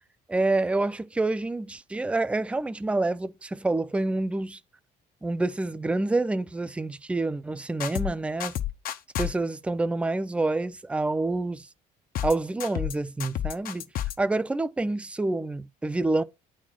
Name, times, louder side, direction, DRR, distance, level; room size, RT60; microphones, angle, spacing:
voice 1, 0.3-4.6 5.2-8.5 9.2-11.7 12.2-13.9 14.2-16.2, right 2 dB, 5° right, 0.4 m, -27 dB
sound 1, 7.8-8.1 8.4-9.3 12.1-12.3 12.6-12.9 13.2-14.1, left 11 dB, 60° left, 0.7 m, -30 dB
8.8 x 4.3 x 6.0 m
cardioid pair, 110°, 17 cm